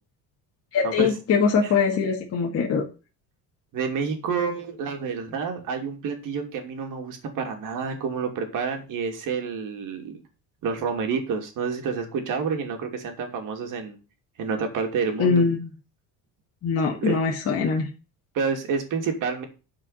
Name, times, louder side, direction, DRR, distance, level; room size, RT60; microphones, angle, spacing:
voice 1, 0.7-2.8 15.2-15.7 16.6-17.9, left 5 dB, 40° left, -2 dB, 2.1 m, -22 dB
voice 2, 3.7-10.2 10.6-14.0 14.4-15.5 17.0-17.2 18.3-19.5, right 5 dB, 55° right, 4 dB, 2.7 m, -29 dB
10.5 x 5.1 x 5.6 m, 0.32 s
cardioid pair, 165°, 37 cm